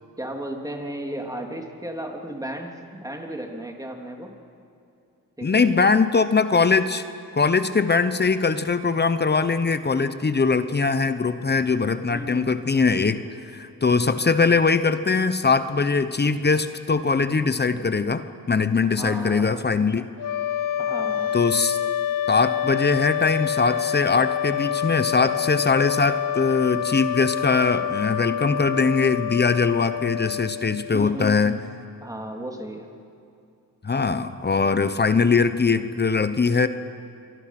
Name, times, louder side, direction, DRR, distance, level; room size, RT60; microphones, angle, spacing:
voice 1, 0.2-4.3 5.4-6.0 12.1-12.6 18.9-20.0 20.8-21.4 30.9-31.6 32.0-32.9, right 1 dB, 10° right, 2 dB, 3.3 m, -34 dB
voice 2, 5.4-7.0 7.3-13.2 13.5-20.1 21.3-21.8 22.3-31.6 33.8-36.7, left 4 dB, 30° left, 11 dB, 1.1 m, -21 dB
sound 1, 20.2-31.1, left 10 dB, 65° left, 0.8 m, -27 dB
27.5 x 24.0 x 6.1 m, 2.6 s
cardioid pair, 90°, 36 cm